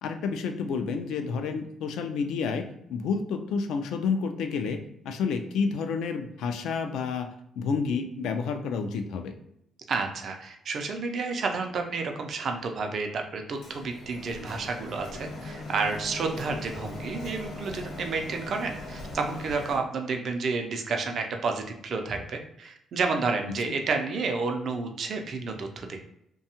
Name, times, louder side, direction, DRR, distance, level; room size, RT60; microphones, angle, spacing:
voice 1, 0.0-4.8 5.0-7.3 7.6-9.3 23.6-23.7, left 5 dB, 85° left, 6 dB, 0.3 m, -30 dB
voice 2, 9.9-26.0, right 4 dB, 60° right, 4 dB, 0.4 m, -30 dB
Printer, 13.6-19.8, left 2 dB, 70° left, 0.9 m, -40 dB
2.7 x 2.2 x 2.8 m, 0.78 s
cardioid pair, 90°, 0 cm